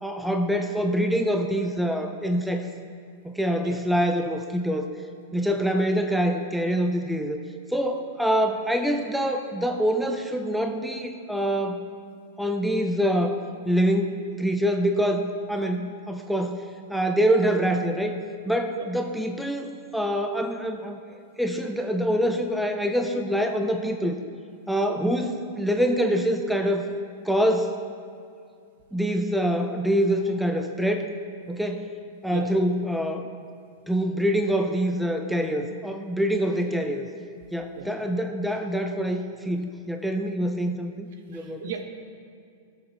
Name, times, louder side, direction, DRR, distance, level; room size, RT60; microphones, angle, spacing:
voice 1, 0.0-2.7 3.2-4.9 5.3-7.4 7.7-11.8 12.4-13.4 13.7-16.6 16.9-18.2 18.5-24.2 24.7-26.9 27.2-27.7 28.9-31.1 31.5-31.9 32.2-33.3 33.9-37.1 37.5-41.6, equal, ahead, 4 dB, 0.4 m, -25 dB
voice 2, 41.3-41.8, right 7 dB, 65° right, 5 dB, 1.1 m, -36 dB
14.5 x 6.9 x 3.3 m, 2.3 s
supercardioid pair, 155°, 0 cm